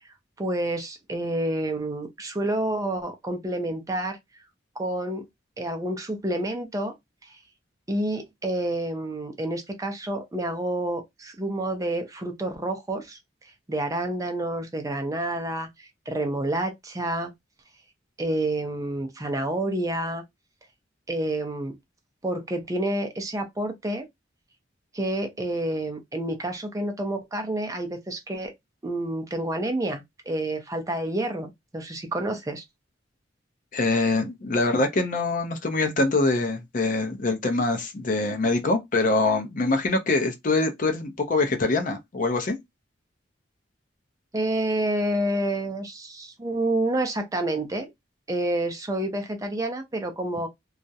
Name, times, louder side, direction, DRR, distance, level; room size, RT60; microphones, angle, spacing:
voice 1, 0.4-4.2 4.8-5.3 5.6-6.9 7.9-13.2 13.7-17.3 18.2-20.2 21.1-21.8 22.2-24.1 24.9-28.5 28.8-32.6 44.3-47.9 48.3-50.5, right 1 dB, 20° right, 0.5 m, -29 dB
voice 2, 33.7-42.6, left 2 dB, 45° left, 0.5 m, -24 dB
2.3 x 2.0 x 2.6 m
head